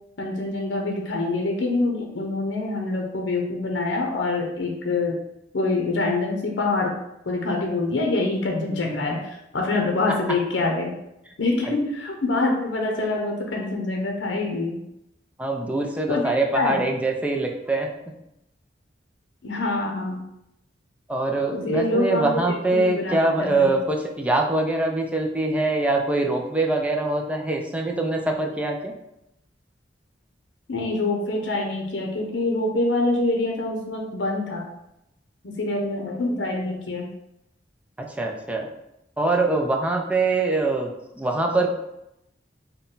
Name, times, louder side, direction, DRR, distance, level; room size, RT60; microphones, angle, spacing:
voice 1, 0.2-5.2 5.5-6.9 7.3-10.9 11.4-14.8 16.1-16.2 16.5-16.9 19.4-20.2 21.5-22.3 22.7-23.7 30.7-34.7 35.4-37.1, left 2 dB, 80° left, 1 dB, 0.7 m, -25 dB
voice 2, 15.4-17.9 21.1-28.9 38.0-38.7 39.2-40.9 41.2-41.7, right 2 dB, 10° right, 1 dB, 0.4 m, -23 dB
3.8 x 2.2 x 3.9 m, 0.85 s
head